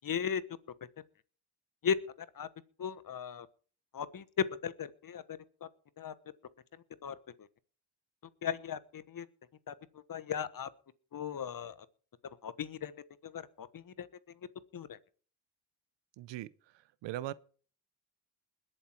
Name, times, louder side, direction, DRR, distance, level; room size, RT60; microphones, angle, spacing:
voice 1, 0.0-0.4 1.8-2.5 2.8-3.5 3.9-4.2 4.6-5.7 6.0-6.1 7.0-7.1 8.4-9.3 9.7-9.8 10.1-10.7 11.1-11.7 12.4-12.9 13.2-14.1 14.7-15.0, left 7 dB, 50° left, 1.3 m, -37 dB
voice 2, 16.2-16.5 17.0-17.3, right 14 dB, 85° right, 0.8 m, -38 dB
21.0 x 7.8 x 4.6 m
supercardioid pair, 60°, 42 cm